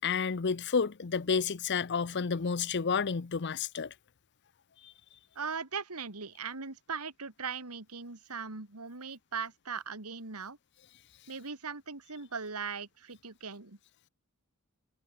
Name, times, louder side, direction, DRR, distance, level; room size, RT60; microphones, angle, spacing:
voice 1, 0.0-3.9 4.8-4.9, left 5 dB, 50° left, 0.7 m, -30 dB
voice 2, 5.4-10.6 11.3-13.8, right 5 dB, 90° right, 2.4 m, -39 dB
head